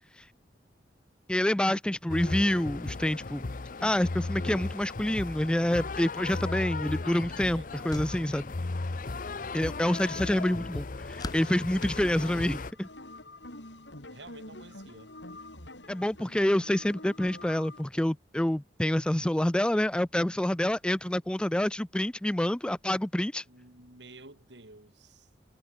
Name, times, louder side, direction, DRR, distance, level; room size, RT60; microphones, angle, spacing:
voice 1, 1.3-3.4 3.8-8.5 9.5-12.9 15.9-23.4, left 1 dB, 5° left, 0.3 m, -27 dB
sound 1, 2.1-12.7, left 3 dB, 50° left, 0.7 m, -36 dB
sound 2, 6.8-12.9, left 2 dB, 20° left, 1.4 m, -48 dB
voice 2, 7.4-8.0 9.1-9.6 14.1-15.2 23.5-25.3, right 2 dB, 80° right, 4.7 m, -52 dB
sound 3, 11.8-17.8, left 2 dB, 85° left, 6.7 m, -47 dB
head